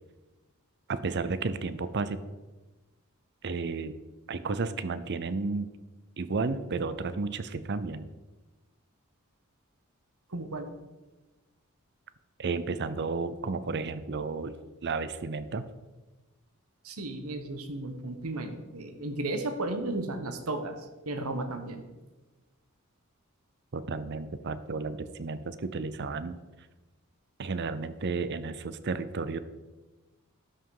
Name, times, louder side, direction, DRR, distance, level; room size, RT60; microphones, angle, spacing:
voice 1, 0.9-2.2 3.4-4.0 4.3-5.7 6.2-8.1 12.4-14.5 14.8-15.7 23.7-26.4 27.4-29.4, right 4 dB, 50° right, 13 dB, 0.6 m, -32 dB
voice 2, 10.3-10.7 16.8-21.8, right 2 dB, 80° right, 7 dB, 1.2 m, -34 dB
12.5 x 5.8 x 4.8 m, 1.2 s
head